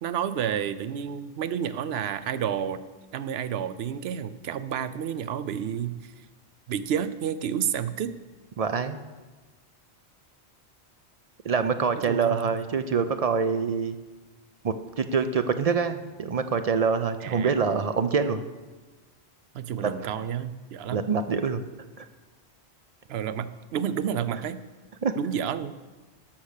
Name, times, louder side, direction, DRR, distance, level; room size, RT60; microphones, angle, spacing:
voice 1, 0.0-2.8 3.1-6.1 6.7-8.1 12.0-12.4 17.2-17.6 19.5-21.0 23.1-24.6 25.2-25.7, right 8 dB, 70° right, 13 dB, 0.8 m, -30 dB
voice 2, 8.6-9.0 11.4-14.0 14.6-18.4 19.8-19.9 20.9-21.6 22.0-22.1 25.0-25.1, right 5 dB, 50° right, 9 dB, 0.4 m, -25 dB
11.5 x 5.9 x 6.6 m, 1.3 s
omnidirectional pair, 1.1 m